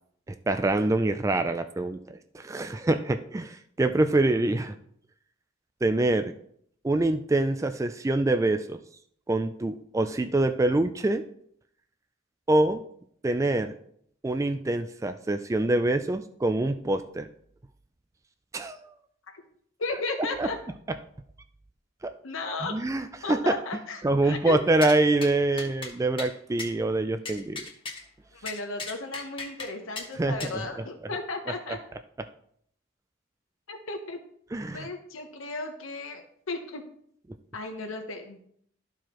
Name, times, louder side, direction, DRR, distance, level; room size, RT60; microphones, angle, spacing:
voice 1, 0.5-4.8 5.8-6.3 6.8-8.8 9.3-11.2 12.5-12.8 13.2-13.7 14.2-17.3 18.5-18.9 20.4-20.5 22.0-22.1 22.7-23.6 24.0-27.7 30.2-30.5 34.5-34.9, right 2 dB, 15° right, 8 dB, 0.3 m, -25 dB
voice 2, 19.8-20.6 22.2-22.7 23.2-24.6 25.5-25.6 28.3-31.8 33.7-34.2 34.7-36.8 37.5-38.4, left 3 dB, 90° left, 3 dB, 1.0 m, -35 dB
sound 1, 24.8-25.0 25.2-25.3 25.6-25.9 26.2-26.3 26.6-26.7 27.3-28.0 28.5-29.7 30.0-30.1 30.4-30.6, left 3 dB, 25° left, 1.3 m, -36 dB
13.0 x 4.7 x 3.0 m, 0.66 s
head